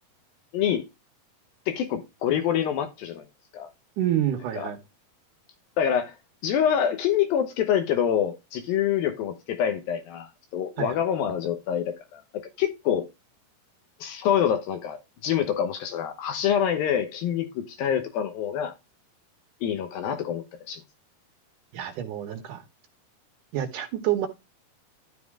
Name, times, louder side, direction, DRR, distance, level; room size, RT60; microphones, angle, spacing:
voice 1, 0.5-0.8 1.7-3.2 3.5-3.7 4.6-4.7 5.8-6.2 6.4-13.1 14.0-18.7 19.6-20.8, left 9 dB, 85° left, 2.8 m, -26 dB
voice 2, 4.0-4.8 10.8-10.9 21.7-22.6 23.5-24.3, right 11 dB, 70° right, 2.4 m, -27 dB
12.5 x 4.2 x 3.6 m
omnidirectional pair, 4.1 m